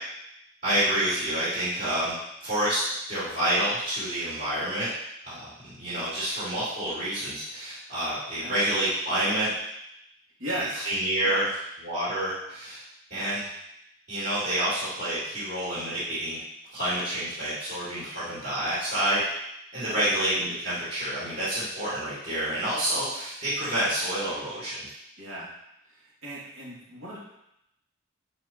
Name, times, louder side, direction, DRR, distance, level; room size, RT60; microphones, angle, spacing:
voice 1, 0.6-4.9 5.2-9.5 10.7-11.5 11.8-12.8 13.1-13.5 14.1-16.4 16.7-19.2 19.7-24.9, right 1 dB, 40° right, -12 dB, 2.7 m, -28 dB
voice 2, 10.4-10.9 11.2-11.4 19.8-20.1 25.2-25.5 25.9-27.2, right 1 dB, 85° right, -7 dB, 2.6 m, -36 dB
7.5 x 5.1 x 3.0 m, 0.81 s
head